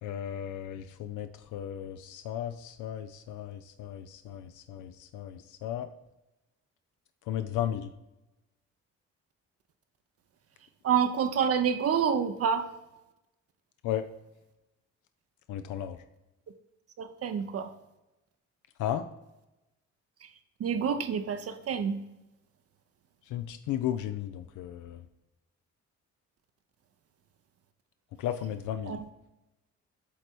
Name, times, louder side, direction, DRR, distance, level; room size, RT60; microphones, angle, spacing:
voice 1, 0.0-5.9 7.3-7.9 13.8-14.1 15.5-16.0 18.8-19.1 23.3-25.0 28.2-29.0, left 10 dB, 80° left, 9 dB, 0.5 m, -35 dB
voice 2, 10.8-12.7 17.0-17.7 20.2-20.3 20.6-22.0 28.9-29.0, right 7 dB, 50° right, 8 dB, 0.6 m, -28 dB
8.2 x 3.4 x 4.4 m, 0.98 s
cardioid pair, 90°, 30 cm